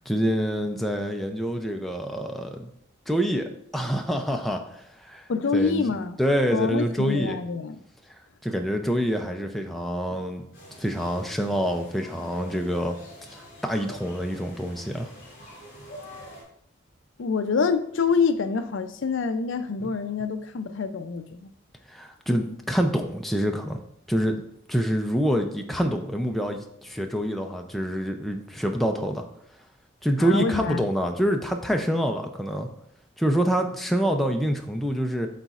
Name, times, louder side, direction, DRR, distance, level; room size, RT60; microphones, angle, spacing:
voice 1, 0.1-2.7 3.1-5.9 6.2-7.4 8.4-10.4 10.8-13.0 13.3-15.1 21.9-23.8 24.1-24.4 24.7-29.2 30.0-32.7 33.2-35.3, equal, ahead, 0.4 m, -26 dB
voice 2, 5.3-6.2 6.5-7.8 17.2-21.5 30.2-30.9, left 5 dB, 65° left, 0.4 m, -26 dB
sound 1, 10.5-16.4, equal, 45° left, 2.7 m, -45 dB
11.5 x 4.0 x 2.4 m
head